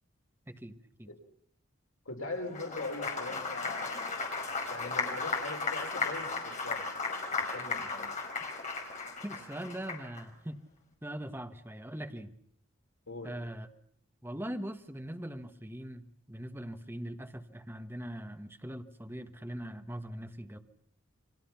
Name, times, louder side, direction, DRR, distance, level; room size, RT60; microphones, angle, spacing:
voice 1, 0.5-1.1 9.2-10.6 11.0-12.3 13.2-13.7 14.2-20.6, right 1 dB, 10° right, 5 dB, 1.5 m, -41 dB
voice 2, 2.1-4.1 4.7-6.8 7.4-8.1 13.1-13.3, left 3 dB, 85° left, 3 dB, 4.2 m, -41 dB
Applause, 2.4-10.2, left 4 dB, 35° left, 5.2 m, -35 dB
29.5 x 24.5 x 5.9 m, 0.63 s
head